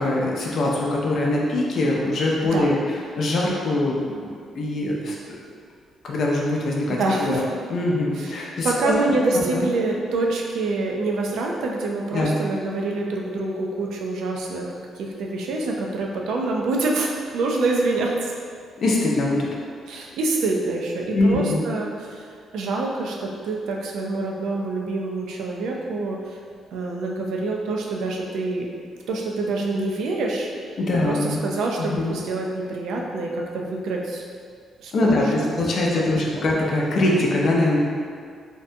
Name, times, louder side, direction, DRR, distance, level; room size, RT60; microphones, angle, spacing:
voice 1, 0.0-2.8 3.2-4.3 4.6-5.4 6.0-7.4 7.7-8.9 9.3-9.7 12.1-12.4 18.8-19.5 21.1-21.6 30.8-31.5 31.8-32.2 34.9-37.8, left 2 dB, 55° left, -2 dB, 0.4 m, -23 dB
voice 2, 6.9-7.4 8.2-18.4 19.9-26.4 26.7-28.7 29.1-30.5 30.9-34.2 34.8-35.5 36.0-36.2, right 2 dB, 80° right, -1 dB, 0.3 m, -26 dB
2.6 x 2.2 x 2.6 m, 2.1 s
cardioid pair, 115°, 0 cm